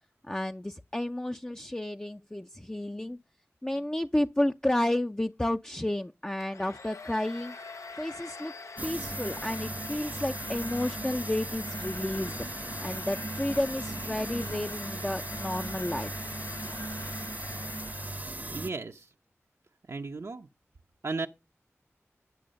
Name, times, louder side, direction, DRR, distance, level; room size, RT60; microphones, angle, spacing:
voice 1, 0.3-3.2 3.6-7.5 8.0-8.5 8.8-12.3 12.8-16.1, left 1 dB, 15° left, 0.5 m, -31 dB
Domestic sounds home sounds, 6.4-18.5, left 4 dB, 85° left, 0.9 m, -44 dB
sound 1, 8.8-18.7, right 2 dB, 35° right, 0.8 m, -37 dB
voice 2, 18.5-19.1 19.9-20.5 21.0-21.3, right 3 dB, 70° right, 0.8 m, -34 dB
10.5 x 6.6 x 5.2 m
wide cardioid pair, 55°, 5 cm